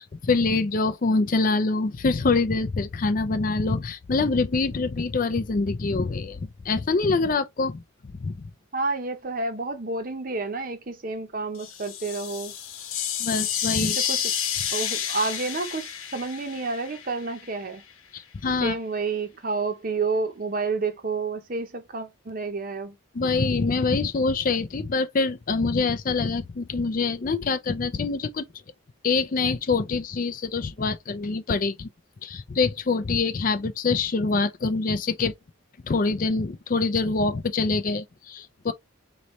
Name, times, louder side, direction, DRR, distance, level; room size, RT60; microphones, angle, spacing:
voice 1, 0.0-7.8 8.2-8.5 13.2-14.0 18.1-18.7 23.1-28.5 29.0-31.9 32.2-35.3 35.9-38.7, left 3 dB, 40° left, 0.4 m, -25 dB
voice 2, 8.7-12.5 13.8-14.3 14.7-17.8 18.6-23.0, right 3 dB, 40° right, 0.8 m, -30 dB
sound 1, 11.6-17.5, left 9 dB, 90° left, 1.0 m, -30 dB
4.0 x 3.1 x 3.1 m
head